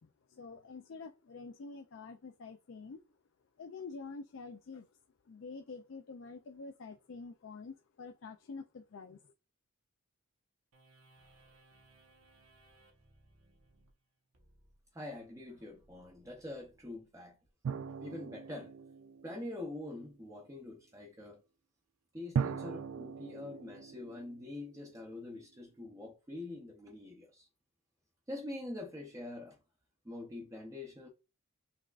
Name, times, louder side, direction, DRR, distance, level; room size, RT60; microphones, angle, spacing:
voice 1, 0.0-3.0 3.6-4.9 5.3-9.3, left 4 dB, 55° left, 0.4 m, -47 dB
sound 1, 10.7-17.5, right 2 dB, 90° right, 1.3 m, -66 dB
voice 2, 14.9-17.4 18.0-18.7 19.2-21.4 22.1-27.5 28.3-29.6 30.0-31.1, left 2 dB, 15° right, 0.7 m, -45 dB
sound 2, 17.6-20.0 22.4-25.3, right 6 dB, 75° right, 0.3 m, -39 dB
6.0 x 3.5 x 2.4 m
head